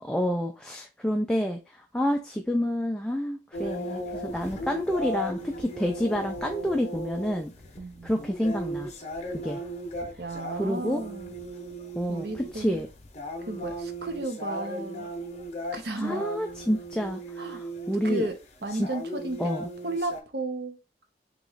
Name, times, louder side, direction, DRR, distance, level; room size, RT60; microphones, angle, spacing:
voice 1, 0.0-7.5 8.0-8.9 9.3-9.6 10.5-11.0 12.0-12.9 15.9-18.3 18.8-18.9 19.4-19.7, equal, 5° left, 0.3 m, -29 dB
sound 1, 3.5-20.2, equal, 40° left, 0.7 m, -37 dB
voice 2, 7.8-8.3 10.2-11.4 12.1-12.8 13.5-15.1 15.7-16.3 17.4-17.6 18.0-19.4 19.8-20.8, right 2 dB, 65° right, 0.7 m, -34 dB
3.0 x 3.0 x 3.9 m
head